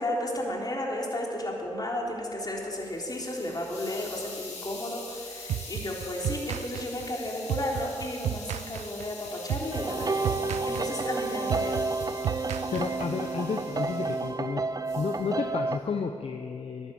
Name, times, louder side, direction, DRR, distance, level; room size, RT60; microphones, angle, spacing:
voice 1, 0.0-10.4 10.7-11.8 12.2-12.7, left 1 dB, 35° left, -1 dB, 3.7 m, -33 dB
Hiss, 2.6-14.3 14.9-15.2, left 3 dB, 75° left, 3.2 m, -44 dB
sound 1, 5.5-13.3, right 11 dB, 85° right, 0.4 m, -34 dB
sound 2, 9.7-15.8, right 3 dB, 35° right, 0.7 m, -31 dB
voice 2, 12.7-14.6 15.0-16.9, left 5 dB, 60° left, 6 dB, 0.8 m, -31 dB
11.0 x 10.5 x 8.5 m, 2.5 s
supercardioid pair, 45°, 11 cm